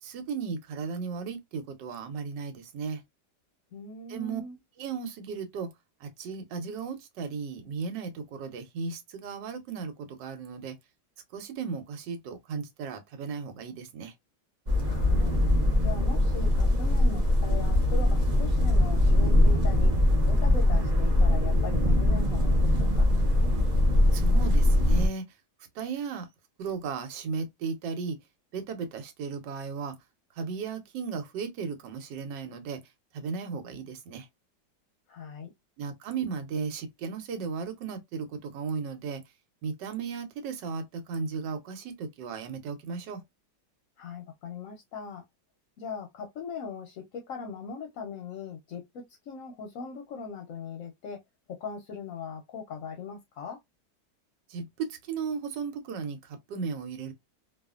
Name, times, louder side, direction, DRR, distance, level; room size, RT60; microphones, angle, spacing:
voice 1, 0.0-3.0 4.1-4.4 4.8-5.7 6.0-10.8 11.3-14.1 24.1-25.4 25.7-26.3 26.6-28.2 28.5-29.9 30.3-32.8 33.1-34.3 35.8-39.2 39.6-43.2 54.5-57.1, right 5 dB, 80° right, 1.3 m, -35 dB
voice 2, 3.7-4.6 14.8-15.3 15.8-19.9 20.3-23.1 35.1-35.5 44.0-45.2 45.8-51.2 51.6-53.6, left 5 dB, 65° left, 0.8 m, -40 dB
sound 1, 14.7-25.1, left 1 dB, 50° right, 0.5 m, -22 dB
2.7 x 2.4 x 2.3 m
omnidirectional pair, 1.9 m